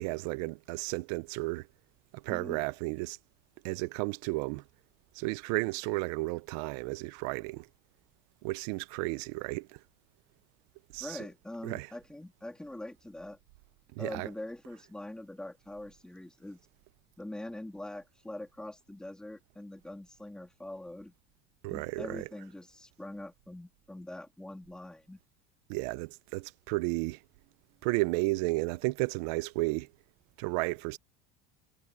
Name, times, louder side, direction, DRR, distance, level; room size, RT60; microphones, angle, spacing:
voice 1, 0.0-1.7 2.1-3.2 3.6-4.6 5.1-7.7 8.4-9.8 10.9-11.3 11.6-12.0 13.9-14.3 21.6-22.3 25.7-27.2 27.8-29.9 30.4-31.0, right 23 dB, 75° right, 0.8 m, -33 dB
voice 2, 2.3-2.6 11.0-13.4 14.0-16.6 17.2-21.1 21.7-25.2, left 1 dB, 5° left, 3.3 m, -43 dB
cardioid pair, 170°, 20 cm